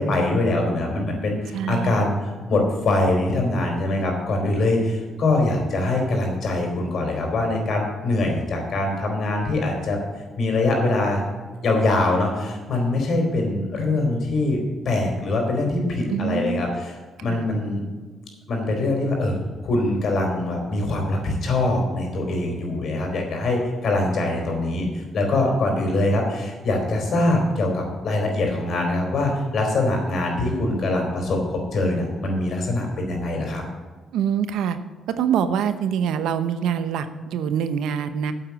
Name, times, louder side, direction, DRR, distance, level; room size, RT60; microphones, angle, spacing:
voice 1, 0.0-10.0 10.4-11.2 11.6-16.9 17.2-17.8 18.5-33.6, left 2 dB, 60° left, 1 dB, 4.2 m, -23 dB
voice 2, 1.5-2.1 16.1-16.6 17.3-17.4 34.1-34.8 35.2-38.3, right 8 dB, 85° right, 10 dB, 0.8 m, -24 dB
9.0 x 7.9 x 7.4 m, 1.4 s
cardioid pair, 90°, 0 cm